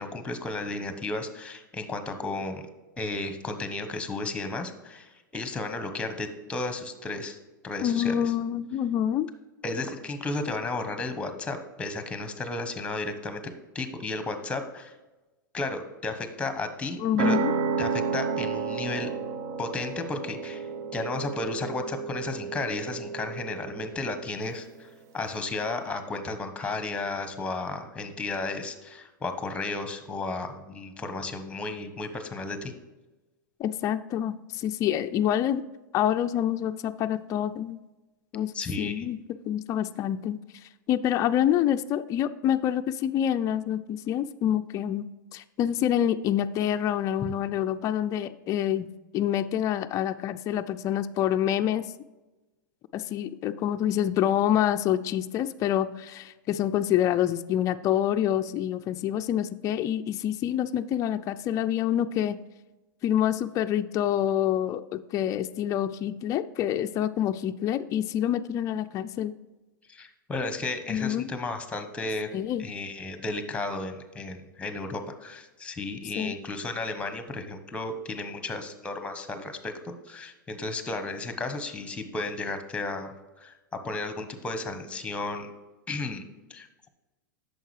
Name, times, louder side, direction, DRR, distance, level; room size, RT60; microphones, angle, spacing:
voice 1, 0.0-2.7 3.0-7.4 7.6-8.3 9.6-14.9 15.5-17.4 17.8-19.1 19.6-20.7 20.9-24.9 25.1-32.7 38.5-39.1 47.2-47.3 69.9-72.3 72.6-83.5 83.8-85.5 85.9-86.2 86.5-86.9, left 3 dB, 10° left, 8 dB, 1.0 m, -33 dB
voice 2, 7.8-9.3 17.0-17.5 33.6-35.6 35.9-37.8 38.3-39.2 39.4-40.4 40.9-51.9 52.9-62.4 63.0-69.3 70.9-71.3 72.3-72.6 76.2-76.3, left 10 dB, 30° left, 8 dB, 0.3 m, -27 dB
sound 1, 17.2-24.4, right 5 dB, 55° right, 0.7 m, -32 dB
9.0 x 6.6 x 3.2 m, 1.1 s
hypercardioid pair, 110°, 11 cm